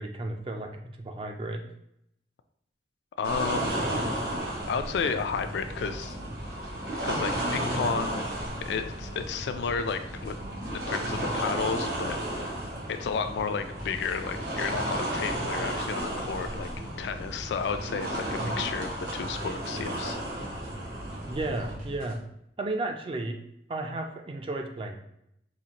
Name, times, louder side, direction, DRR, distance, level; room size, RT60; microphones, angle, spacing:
voice 1, 0.0-1.6 18.4-18.5 21.3-22.2 22.6-23.4 23.7-25.0, right 2 dB, 30° right, 4 dB, 0.3 m, -33 dB
voice 2, 3.2-3.8 4.7-6.2 7.0-8.2 8.6-10.4 10.7-12.6 12.9-20.2, left 5 dB, 75° left, 9 dB, 0.3 m, -32 dB
sound 1, 3.2-21.8, right 1 dB, 75° right, 1.0 m, -33 dB
sound 2, 3.4-22.2, right 1 dB, 50° right, 0.8 m, -45 dB
4.0 x 2.4 x 2.8 m, 0.78 s
head